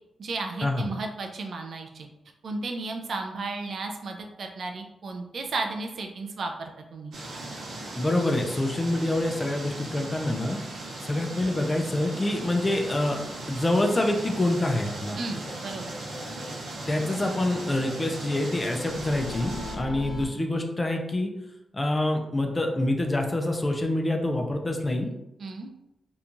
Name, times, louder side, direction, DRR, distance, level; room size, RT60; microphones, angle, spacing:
voice 1, 0.2-2.1 2.4-7.1 15.2-15.9 25.4-25.7, right 3 dB, 55° right, 3 dB, 0.3 m, -34 dB
sound 1, 7.1-19.8, right 2 dB, 85° right, 0.7 m, -38 dB
voice 2, 8.0-10.6 11.0-13.2 13.5-15.2 16.9-21.3 21.7-25.1, left 1 dB, 20° left, 3 dB, 0.3 m, -26 dB
sound 2, 13.9-14.0 14.3-14.4 14.7-14.8 15.1-15.2 15.5-16.8 17.1-20.3, left 2 dB, 75° left, 0.7 m, -41 dB
2.9 x 2.2 x 2.5 m, 0.91 s
wide cardioid pair, 160°, 0 cm